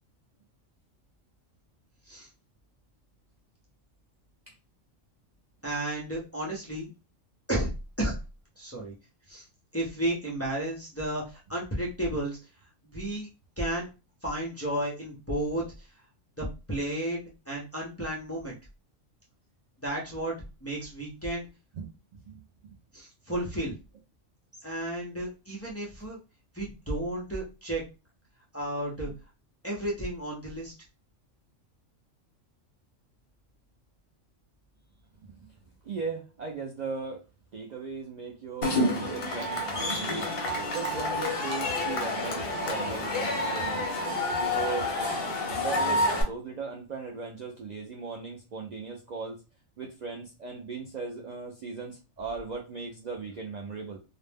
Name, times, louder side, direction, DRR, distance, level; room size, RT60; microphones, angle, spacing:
voice 1, 5.6-6.9 7.5-7.7 8.0-8.1 8.6-8.9 9.3-9.4 9.7-12.4 12.8-13.3 13.6-13.9 14.2-15.9 16.4-18.6 19.8-20.3 20.6-21.5 22.9-23.8 24.6-26.2 26.5-27.8 28.5-29.1 29.6-30.7, right 1 dB, 20° left, -4 dB, 0.5 m, -32 dB
voice 2, 21.7-22.4 35.2-35.6 35.8-37.2 37.5-40.3 40.7-43.9 44.4-44.9 45.5-49.4 49.8-54.0, right 4 dB, 80° right, -1 dB, 0.3 m, -38 dB
Cheering / Crowd, 38.6-46.2, left 1 dB, 55° left, 0.9 m, -29 dB
2.4 x 2.0 x 3.4 m, 0.30 s
omnidirectional pair, 1.3 m